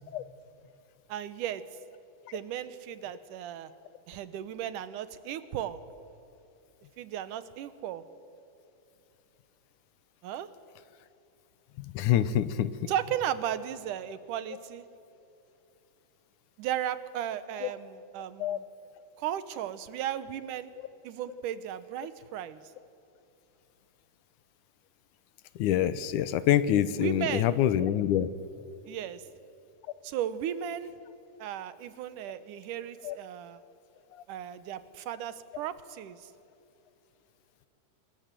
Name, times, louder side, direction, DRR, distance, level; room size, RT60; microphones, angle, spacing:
voice 1, 1.1-1.6 2.3-3.7 4.1-5.8 7.0-8.0 10.2-10.5 12.9-14.9 16.6-18.6 19.2-20.7 21.0-22.6 27.0-27.5 28.9-29.2 30.0-30.9 31.4-33.6 34.3-36.3, right 10 dB, 85° right, 13 dB, 2.6 m, -35 dB
voice 2, 11.8-12.7 17.6-17.7 18.4-18.6 20.8-20.9 25.6-28.3 33.0-33.2, left 11 dB, 80° left, 15 dB, 2.3 m, -26 dB
26.5 x 21.5 x 7.6 m, 2.8 s
omnidirectional pair, 3.6 m